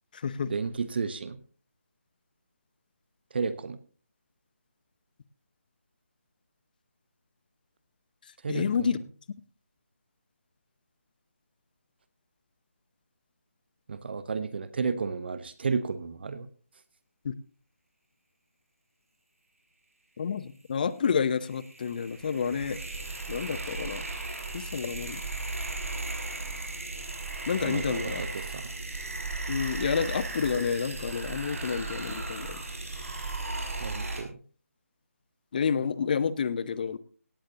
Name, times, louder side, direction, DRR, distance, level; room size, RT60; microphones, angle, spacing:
voice 1, 0.5-1.4 3.3-3.8 8.4-8.9 13.9-16.5 27.6-28.6 33.8-34.4, right 5 dB, 45° right, 13 dB, 0.9 m, -32 dB
voice 2, 8.5-9.0 17.2-17.3 20.2-22.8 23.3-24.1 24.5-25.2 27.5-28.2 29.5-32.6 35.5-37.0, left 6 dB, 35° left, 16 dB, 0.9 m, -29 dB
sound 1, 21.1-34.2, right 3 dB, 65° right, 6.0 m, -36 dB
17.5 x 14.5 x 2.9 m, 0.41 s
figure-of-eight pair, 155°, 8 cm